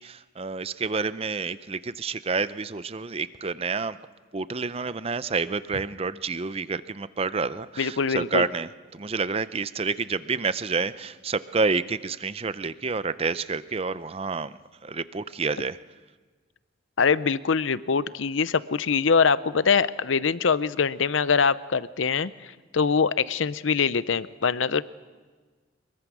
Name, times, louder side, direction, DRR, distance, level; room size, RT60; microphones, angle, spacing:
voice 1, 0.0-4.0 4.3-15.8, right 4 dB, 30° right, 15 dB, 0.6 m, -29 dB
voice 2, 7.8-8.5 17.0-24.8, left 5 dB, 75° left, 16 dB, 0.7 m, -23 dB
24.0 x 22.5 x 6.2 m, 1.4 s
head